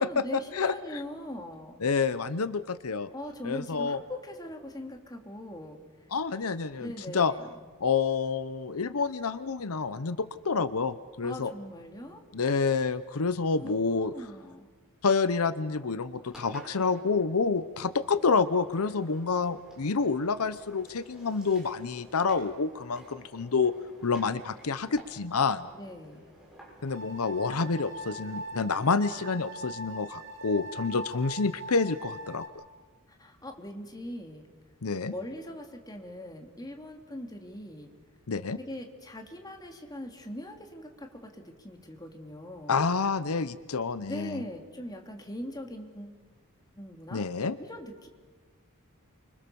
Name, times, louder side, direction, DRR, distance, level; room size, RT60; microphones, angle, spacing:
voice 1, 0.0-1.8 3.1-5.8 6.8-7.6 11.2-12.2 13.6-14.7 25.7-26.3 33.1-34.5 35.1-37.9 38.6-42.9 44.1-46.2 46.8-47.3 47.6-48.1, left 1 dB, 20° left, 3 dB, 3.0 m, -41 dB
voice 2, 0.5-1.0 1.8-3.1 3.4-4.0 6.1-7.3 7.8-11.5 12.3-14.1 15.0-23.7 24.0-25.7 26.8-32.4 34.8-35.1 38.3-38.6 42.7-44.4 47.1-47.6, left 4 dB, 75° left, 14 dB, 0.8 m, -28 dB
Engine, 16.3-28.4, right 1 dB, 5° right, 7.9 m, -53 dB
sound 1, 26.9-32.5, right 1 dB, 50° right, 4.3 m, -41 dB
30.0 x 25.0 x 7.0 m, 1.4 s
head